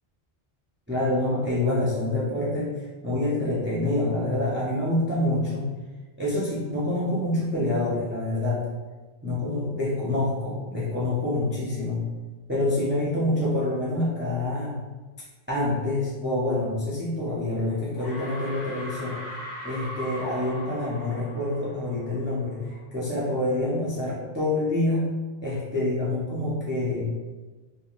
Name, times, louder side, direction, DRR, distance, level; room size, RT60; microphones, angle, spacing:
voice 1, 0.9-5.7 6.2-8.7 9.2-12.0 12.5-14.8 15.5-19.2 19.6-25.1 25.4-27.1, left 1 dB, 20° right, -8 dB, 0.4 m, -26 dB
sound 1, 17.3-17.7 18.0-22.5, equal, 55° left, 0.6 m, -39 dB
3.1 x 2.2 x 2.4 m, 1.3 s
omnidirectional pair, 1.0 m